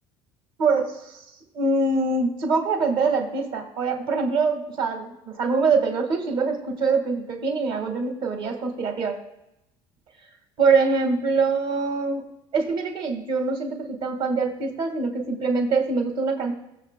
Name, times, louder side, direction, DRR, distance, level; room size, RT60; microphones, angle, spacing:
voice 1, 0.6-1.0 1.5-9.2 10.6-12.2 12.5-16.5, right 4 dB, 45° right, 4 dB, 1.8 m, -24 dB
20.0 x 7.2 x 2.2 m, 0.87 s
cardioid pair, 165°, 11 cm